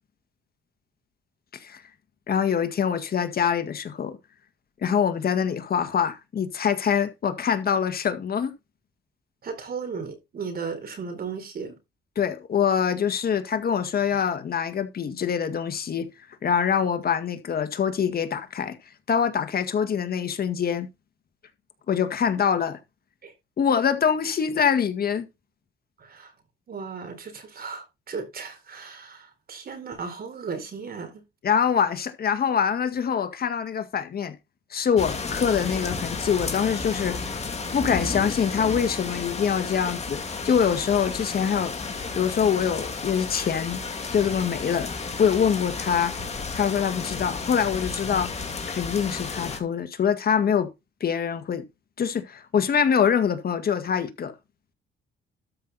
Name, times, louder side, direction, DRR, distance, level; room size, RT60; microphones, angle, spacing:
voice 1, 2.3-4.2 4.8-8.5 12.2-16.1 16.4-18.8 19.1-20.9 21.9-22.8 23.6-25.3 31.4-34.4 34.7-37.2 37.7-41.7 42.1-43.8 44.1-44.9 45.2-46.1 46.5-48.3 48.7-50.7 51.0-51.6 52.0-54.3, left 7 dB, 50° left, 1.8 m, -24 dB
voice 2, 9.4-11.8 23.2-23.3 26.0-26.3 26.7-31.2, right 5 dB, 50° right, 4.3 m, -36 dB
sound 1, 35.0-49.6, left 4 dB, 35° left, 2.4 m, -32 dB
13.0 x 5.7 x 4.2 m
cardioid pair, 90°, 20 cm